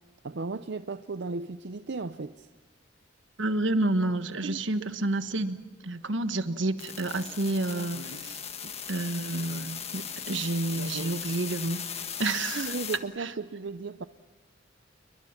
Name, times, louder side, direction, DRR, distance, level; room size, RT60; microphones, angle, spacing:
voice 1, 0.2-2.5 4.4-4.9 12.5-14.0, right 3 dB, 65° right, 11 dB, 0.6 m, -35 dB
voice 2, 3.4-8.4 8.9-11.8 12.2-12.7 13.2-13.3, right 2 dB, 80° right, 10 dB, 1.4 m, -29 dB
sound 1, 6.8-13.0, left 8 dB, 35° left, 1.5 m, -38 dB
29.5 x 22.5 x 5.9 m, 1.4 s
head